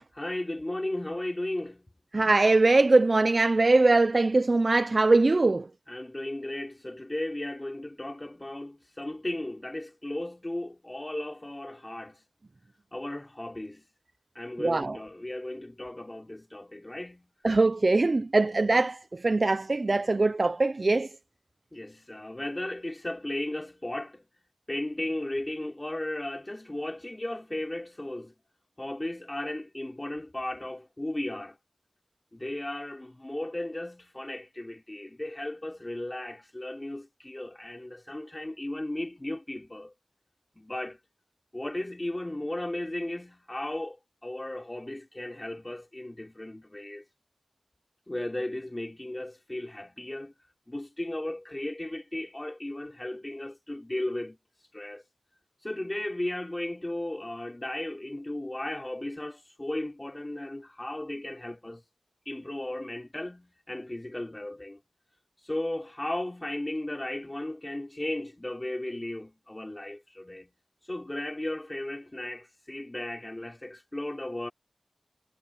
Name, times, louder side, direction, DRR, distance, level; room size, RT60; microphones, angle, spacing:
voice 1, 0.1-1.9 5.9-12.2 12.9-13.8 14.3-17.3 21.7-24.2 24.7-28.3 28.8-31.6 32.3-39.9 40.6-41.0 41.5-47.0 48.1-50.3 50.7-54.4 54.7-55.0 55.6-61.8 62.2-64.8 65.4-70.5 70.8-74.5, left 1 dB, 25° left, 4.7 m, -35 dB
voice 2, 2.1-5.6 14.6-15.0 17.4-19.0 19.2-21.1, right 3 dB, 55° right, 0.7 m, -22 dB
wide cardioid pair, 55°, 0 cm